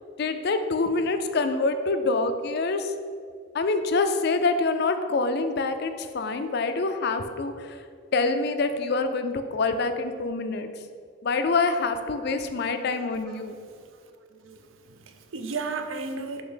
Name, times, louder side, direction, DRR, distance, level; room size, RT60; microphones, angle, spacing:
voice 1, 0.2-2.9 3.5-7.8 8.1-10.7 11.2-13.5, left 3 dB, 50° left, 9 dB, 0.4 m, -26 dB
voice 2, 14.9-16.4, right 4 dB, 75° right, 7 dB, 0.5 m, -34 dB
6.7 x 2.9 x 5.6 m, 2.1 s
head